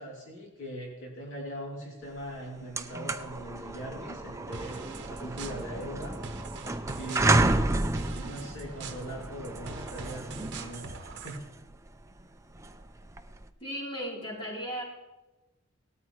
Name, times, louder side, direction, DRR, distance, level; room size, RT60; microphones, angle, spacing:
voice 1, 0.0-6.2 6.9-10.9 11.2-11.4, right 1 dB, 60° left, -3 dB, 2.9 m, -41 dB
sound 1, 2.2-2.3 2.6-13.5, right 2 dB, 15° right, 0.5 m, -31 dB
sound 2, 4.5-11.4, right 4 dB, 55° right, 1.1 m, -44 dB
voice 2, 13.6-14.8, equal, 25° left, -4 dB, 3.8 m, -36 dB
18.5 x 13.5 x 3.2 m, 1.0 s
head